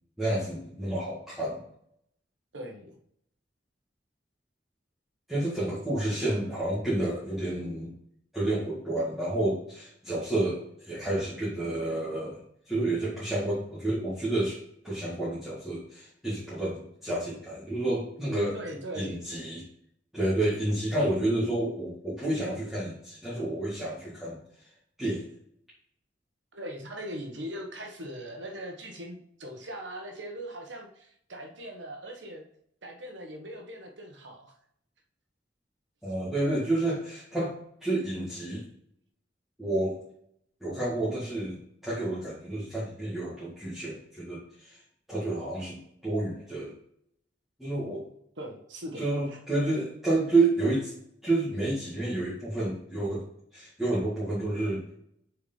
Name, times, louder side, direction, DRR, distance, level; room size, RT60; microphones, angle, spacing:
voice 1, 0.2-1.6 5.3-7.9 8.3-14.6 14.8-18.6 18.9-19.6 20.1-24.4 25.0-25.3 36.0-37.5 37.8-38.7 39.6-40.0 40.6-44.8 45.1-46.7 47.6-48.1 49.0-50.9 51.2-53.2 53.5-54.8, right 2 dB, ahead, -10 dB, 2.1 m, -30 dB
voice 2, 2.5-2.9 18.5-19.2 26.5-32.4 32.8-34.5 48.4-49.4, right 1 dB, 75° right, 2 dB, 1.5 m, -40 dB
6.7 x 4.7 x 5.6 m, 0.71 s
head